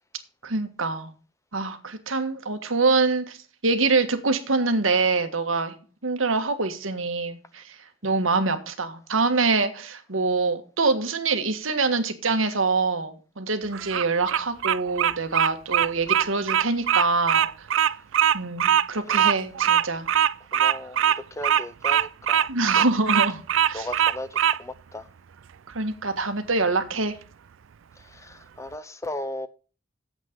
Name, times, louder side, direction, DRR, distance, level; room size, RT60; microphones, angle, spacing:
voice 1, 0.4-1.1 1.5-3.4 3.6-5.7 6.0-7.7 8.0-17.7 18.3-20.1 22.5-23.4 23.7-23.9 25.7-27.2, right 3 dB, 85° right, 1.6 m, -25 dB
Bird vocalization bird call bird song, 13.7-24.6, right 9 dB, 70° right, 0.4 m, -21 dB
voice 2, 18.9-19.4 20.5-22.9 23.7-25.1 28.0-29.5, left 1 dB, 15° left, 0.7 m, -37 dB
8.5 x 7.9 x 5.2 m
head